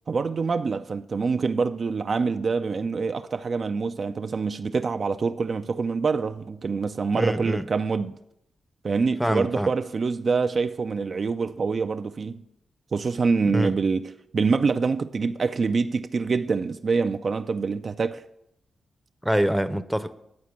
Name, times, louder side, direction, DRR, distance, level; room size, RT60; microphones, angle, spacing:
voice 1, 0.1-8.2 8.8-12.4 12.9-18.2, right 4 dB, 55° right, 0.3 m, -25 dB
voice 2, 7.1-7.6 9.2-9.7 13.5-13.8 19.2-20.1, equal, ahead, 0.6 m, -25 dB
9.5 x 4.2 x 7.2 m
cardioid pair, 60°, 0 cm